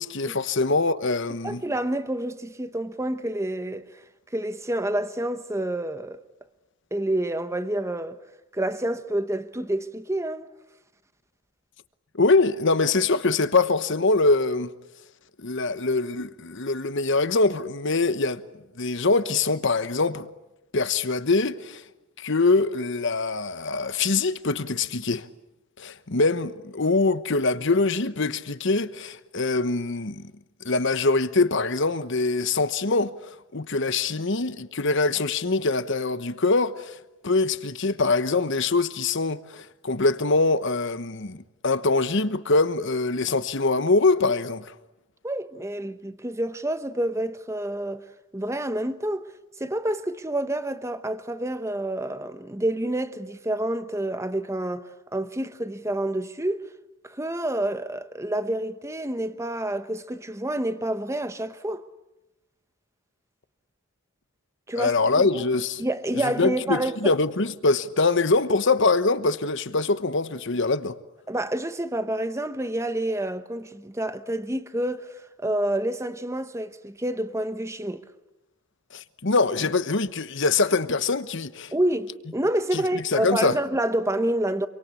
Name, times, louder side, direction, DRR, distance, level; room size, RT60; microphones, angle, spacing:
voice 1, 0.0-1.6 12.1-14.7 15.4-18.4 18.8-20.3 20.7-21.8 22.2-25.3 25.8-30.3 30.6-33.1 33.5-37.0 37.2-44.7 64.7-65.8 66.2-71.0 78.9-81.7 82.7-83.6, left 3 dB, 55° left, 1.1 m, -23 dB
voice 2, 1.4-3.9 4.3-6.2 6.9-8.2 8.5-10.5 45.2-48.0 48.3-49.3 49.6-56.6 57.0-61.8 64.7-65.4 65.8-67.1 71.3-75.1 75.4-78.0 81.7-84.7, right 1 dB, 15° right, 1.0 m, -28 dB
27.0 x 24.5 x 8.4 m
head